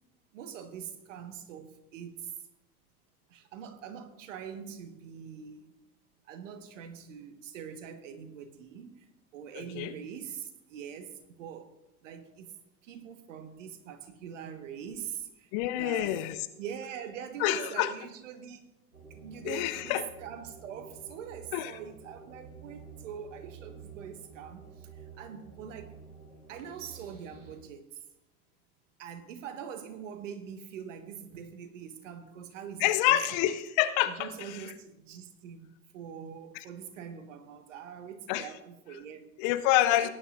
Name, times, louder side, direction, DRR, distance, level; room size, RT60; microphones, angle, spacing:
voice 1, 0.3-2.3 3.3-5.7 6.2-11.8 12.0-12.5 12.8-15.5 15.8-16.2 16.6-18.7 19.1-25.9 26.5-28.0 29.0-33.2 34.1-35.7 35.9-39.3 39.9-40.1, right 8 dB, 55° right, 1.5 m, -43 dB
voice 2, 9.5-9.9 15.5-16.4 17.4-17.9 19.4-20.0 21.5-21.8 32.8-34.7 36.5-36.6 38.3-38.5 39.4-40.1, left 14 dB, 30° left, 0.5 m, -27 dB
sound 1, 18.9-27.6, right 5 dB, 85° right, 2.0 m, -50 dB
18.0 x 10.0 x 2.5 m
figure-of-eight pair, 95°, 44 cm